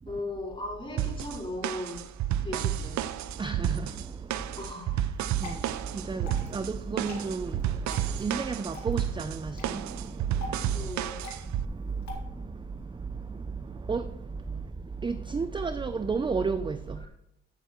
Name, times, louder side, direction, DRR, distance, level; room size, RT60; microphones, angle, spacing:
voice 1, 0.1-2.0 2.4-3.0 4.6-5.0 10.7-11.1, left 1 dB, 15° left, 3.9 m, -37 dB
sound 1, 1.0-11.7, right 11 dB, 70° right, 0.5 m, -31 dB
voice 2, 3.3-11.0 11.4-17.1, right 4 dB, 15° right, 0.4 m, -34 dB
Water / Drip, 5.1-12.1, left 2 dB, 65° left, 2.3 m, -46 dB
15.0 x 6.5 x 3.0 m
cardioid pair, 90°, 30 cm